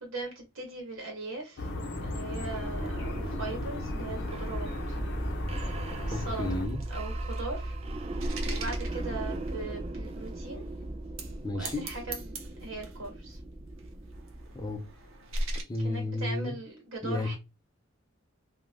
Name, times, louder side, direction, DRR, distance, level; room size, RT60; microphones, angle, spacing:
voice 1, 0.0-1.7 2.0-5.0 6.1-6.6 6.9-7.8 8.4-10.6 11.5-13.4 15.8-17.4, right 2 dB, 70° right, 1.0 m, -39 dB
sound 1, 1.6-6.7, left 1 dB, 60° left, 0.6 m, -36 dB
sound 2, 2.4-15.1, right 1 dB, 30° right, 0.4 m, -37 dB
voice 2, 6.1-6.8 11.4-11.9 14.5-14.9 15.5-16.6 17.0-17.4, left 2 dB, 20° left, 0.5 m, -32 dB
sound 3, 6.3-9.6 10.3-10.4 11.0-11.4 11.6-13.1 13.8-15.6, right 1 dB, 85° right, 0.7 m, -38 dB
2.5 x 2.3 x 3.3 m
head